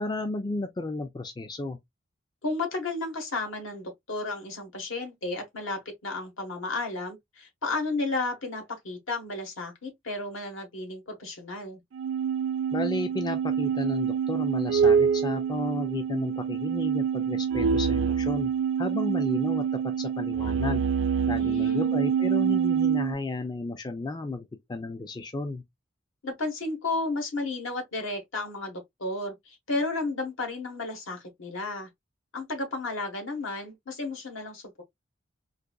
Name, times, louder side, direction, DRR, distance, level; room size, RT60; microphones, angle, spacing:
voice 1, 0.0-1.8 12.7-18.5 18.8-20.8 21.3-25.6, left 2 dB, 20° left, 0.3 m, -33 dB
voice 2, 2.4-11.8 21.4-22.1 26.2-31.9 32.3-34.8, left 2 dB, 75° left, 1.2 m, -33 dB
sound 1, 11.9-23.1, right 7 dB, 70° right, 0.4 m, -26 dB
4.0 x 2.6 x 2.2 m
head